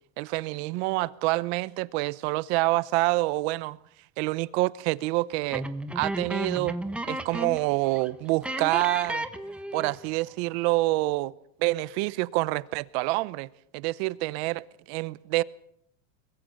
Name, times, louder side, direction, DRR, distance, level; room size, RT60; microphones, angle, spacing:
voice 1, 0.2-3.8 4.2-5.6 5.9-6.8 7.1-9.3 9.7-11.3 11.6-13.5 13.7-15.4, right 21 dB, 55° right, 0.9 m, -27 dB
sound 1, 5.5-7.7 8.0-8.1 8.4-10.1, right 1 dB, 5° right, 1.0 m, -33 dB
22.5 x 21.5 x 6.5 m
supercardioid pair, 160°, 38 cm